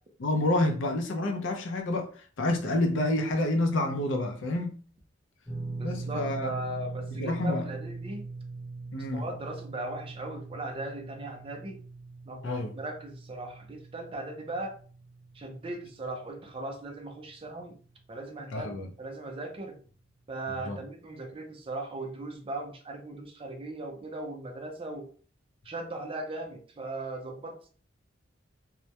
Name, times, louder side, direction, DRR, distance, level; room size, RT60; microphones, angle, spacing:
voice 1, 0.2-4.8 5.8-6.5 7.2-7.7 8.9-9.3 12.4-12.7 18.5-18.9 20.6-20.8, left 1 dB, 70° left, 0.5 m, -28 dB
sound 1, 5.5-17.7 18.0-18.2 19.9-20.0, right 3 dB, 15° left, 0.8 m, -42 dB
voice 2, 5.8-8.3 8.9-11.8 12.3-12.5 12.7-14.8 15.3-17.8 18.1-19.8 20.3-25.1 25.6-27.7, right 2 dB, 30° right, 0.4 m, -38 dB
2.2 x 2.0 x 2.7 m
head